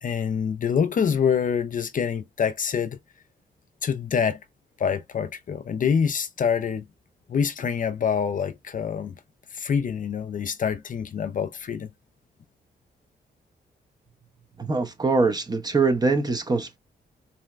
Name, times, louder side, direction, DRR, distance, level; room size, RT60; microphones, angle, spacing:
voice 1, 0.0-3.0 3.8-4.4 4.8-6.8 7.3-9.1 9.5-11.9, left 7 dB, 50° left, 0.4 m, -26 dB
voice 2, 14.6-16.8, right 3 dB, 20° right, 0.6 m, -23 dB
3.8 x 2.1 x 2.3 m
cardioid pair, 75°, 18 cm